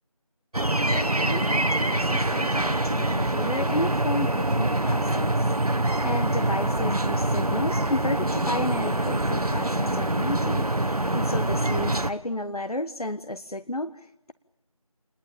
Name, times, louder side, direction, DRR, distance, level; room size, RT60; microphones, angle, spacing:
sound 1, 0.5-12.1, right 1 dB, 85° right, 1.2 m, -25 dB
voice 1, 0.9-10.7 11.1-14.3, left 1 dB, 80° left, 10 dB, 1.3 m, -32 dB
28.5 x 21.0 x 8.7 m, 0.81 s
figure-of-eight pair, 175°, 19 cm